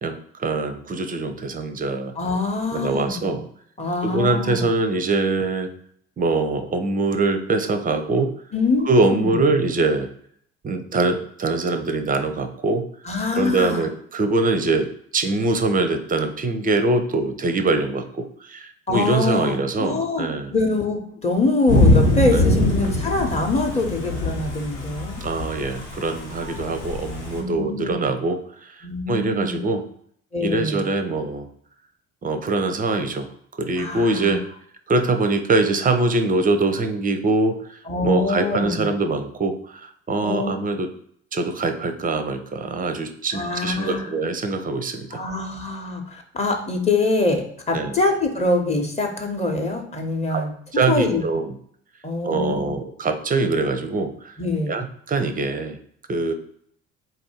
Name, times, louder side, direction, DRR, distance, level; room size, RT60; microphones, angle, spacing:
voice 1, 0.0-2.1 2.7-3.4 4.0-5.7 6.2-8.3 8.9-10.1 10.6-12.9 13.3-20.5 22.3-22.4 25.2-29.8 30.4-31.5 32.2-33.3 33.6-34.4 34.9-40.9 41.3-45.2 47.7-48.0 50.3-50.4 50.7-51.5 52.2-54.3 54.7-55.8 56.1-56.3, right 3 dB, 25° right, 8 dB, 0.5 m, -23 dB
voice 2, 2.2-3.4 3.8-4.7 8.5-9.4 13.0-13.8 18.9-25.2 27.3-28.0 28.8-29.7 30.3-30.9 33.8-34.4 37.9-38.9 40.2-40.5 43.3-44.1 45.1-51.2 52.0-52.8 54.4-54.8, left 3 dB, 20° left, 2 dB, 0.9 m, -24 dB
Thunder / Rain, 21.7-27.4, left 1 dB, 70° left, 1.1 m, -22 dB
4.0 x 2.6 x 4.3 m, 0.65 s
hypercardioid pair, 60°, 37 cm